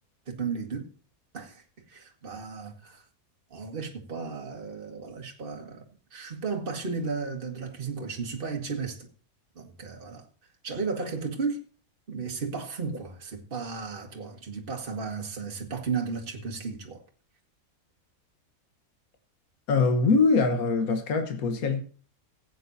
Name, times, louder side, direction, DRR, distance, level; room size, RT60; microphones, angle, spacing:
voice 1, 0.3-0.9 1.3-3.1 3.5-5.9 6.1-9.1 9.6-10.3 10.6-11.6 12.1-17.0, right 5 dB, 40° right, 1.9 m, -34 dB
voice 2, 19.7-21.8, left 4 dB, 80° left, 1.7 m, -23 dB
17.0 x 8.4 x 2.7 m
omnidirectional pair, 1.5 m